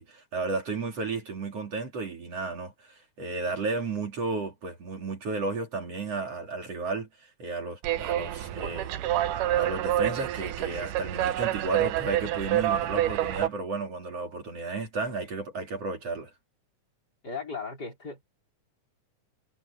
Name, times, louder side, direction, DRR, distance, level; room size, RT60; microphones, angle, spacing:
voice 1, 0.0-16.3, right 3 dB, 50° right, 4.0 m, -33 dB
sound 1, 7.8-13.5, right 13 dB, 80° right, 2.5 m, -28 dB
voice 2, 17.2-18.2, left 4 dB, 30° left, 5.2 m, -36 dB
omnidirectional pair, 3.6 m